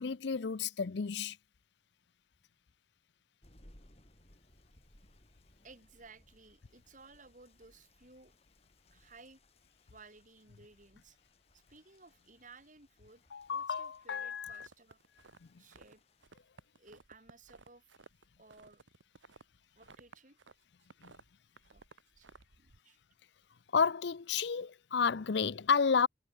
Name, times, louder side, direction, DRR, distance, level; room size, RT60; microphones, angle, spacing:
voice 1, 0.0-1.4 13.3-14.7 21.0-21.1 23.7-26.1, left 6 dB, 60° left, 0.5 m, -31 dB
sound 1, 3.4-16.2, left 1 dB, 30° left, 4.8 m, -65 dB
voice 2, 5.6-8.3 8.9-9.4 9.9-11.2 11.5-13.2 13.5-15.0 15.6-16.0 16.8-17.9 18.4-18.8 19.8-20.4 21.7-21.8 22.2-22.3 22.6-23.0, right 3 dB, 40° right, 7.6 m, -58 dB
sound 2, 14.5-15.9 16.2-20.5 20.8-22.8, right 3 dB, 75° right, 1.5 m, -58 dB
head